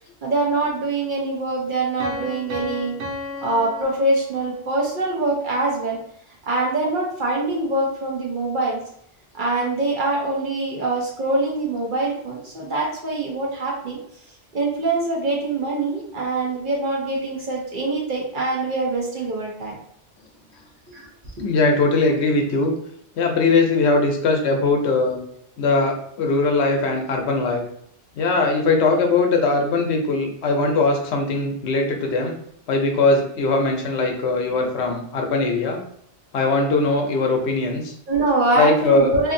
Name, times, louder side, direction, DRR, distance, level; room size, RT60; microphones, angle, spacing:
voice 1, 0.2-2.9 3.4-6.0 6.5-8.8 9.3-14.0 14.5-19.7 20.9-21.1 38.1-39.3, right 2 dB, 55° right, -2 dB, 0.7 m, -24 dB
Piano, 2.0-4.8, left 2 dB, 85° right, 0.9 m, -34 dB
voice 2, 21.4-22.7 23.2-25.2 25.6-27.6 28.1-32.4 32.7-35.8 36.3-37.9 38.5-39.2, left 3 dB, 70° left, 3 dB, 0.8 m, -20 dB
2.6 x 2.5 x 2.6 m, 0.68 s
omnidirectional pair, 1.2 m